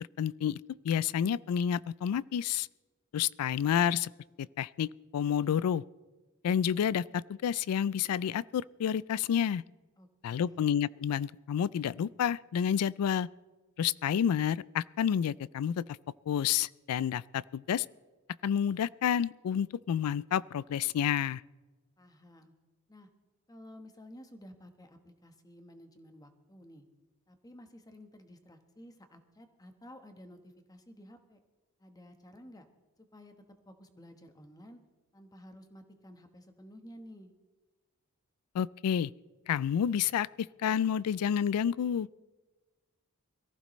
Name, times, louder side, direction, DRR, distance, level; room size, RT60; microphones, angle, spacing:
voice 1, 0.2-0.6 0.8-2.7 3.1-4.1 4.6-5.8 6.4-9.6 10.2-13.3 13.8-15.8 16.3-17.9 18.4-21.4 38.5-39.1 39.5-40.3 40.6-42.1, left 8 dB, 80° left, 21 dB, 0.3 m, -29 dB
voice 2, 10.0-10.7 22.0-22.5 22.9-23.1 23.5-26.9 27.3-31.4 31.8-32.6 33.0-33.3 33.6-34.8 35.1-37.3, equal, 15° left, 7 dB, 1.2 m, -53 dB
22.5 x 14.5 x 3.1 m, 1.3 s
head